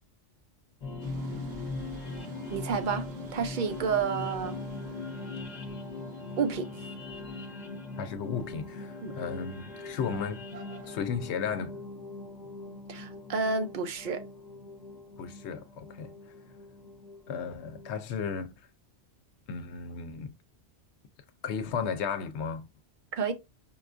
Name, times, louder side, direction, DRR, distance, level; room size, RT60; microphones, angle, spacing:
sound 1, 0.8-17.9, left 3 dB, 40° left, 0.8 m, -41 dB
sound 2, 1.0-11.0, right 2 dB, 70° right, 1.0 m, -52 dB
voice 1, 2.5-3.1 3.3-4.6 6.4-6.7 9.0-9.1 12.9-14.2 23.1-23.3, right 5 dB, 55° right, 0.6 m, -30 dB
voice 2, 8.0-10.4 10.8-11.8 15.2-16.1 17.3-18.5 19.5-20.3 21.4-22.7, left 6 dB, 70° left, 0.8 m, -34 dB
5.4 x 2.3 x 2.4 m
omnidirectional pair, 1.2 m